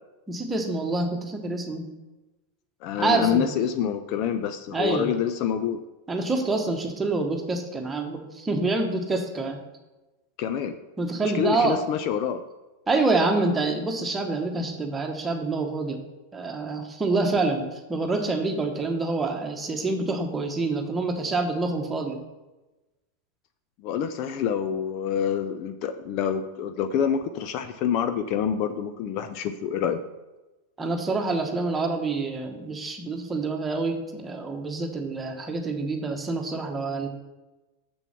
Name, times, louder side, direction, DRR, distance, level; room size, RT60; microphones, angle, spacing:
voice 1, 0.3-1.9 3.0-3.4 4.7-5.1 6.1-9.6 11.0-11.8 12.9-16.0 16.3-22.2 30.8-37.1, right 3 dB, 15° right, 3 dB, 1.4 m, -27 dB
voice 2, 2.8-5.8 10.4-10.8 11.2-12.4 23.8-30.0, left 8 dB, 40° left, 9 dB, 0.6 m, -27 dB
7.1 x 6.8 x 5.9 m, 1.1 s
figure-of-eight pair, 90°, 0 cm